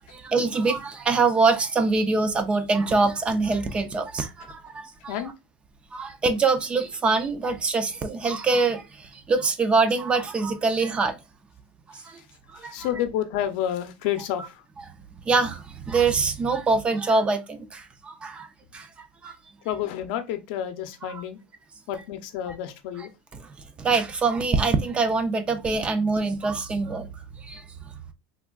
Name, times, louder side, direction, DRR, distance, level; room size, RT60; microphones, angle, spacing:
voice 1, 0.1-5.1 5.9-11.2 11.9-12.2 12.5-12.9 15.2-19.4 21.0-21.2 23.3-27.1 27.4-27.6, right 4 dB, 20° right, 0.4 m, -24 dB
voice 2, 12.6-14.6 19.6-21.4 21.9-23.1, left 11 dB, 65° left, 0.6 m, -30 dB
3.4 x 2.2 x 2.3 m
supercardioid pair, 135°, 5 cm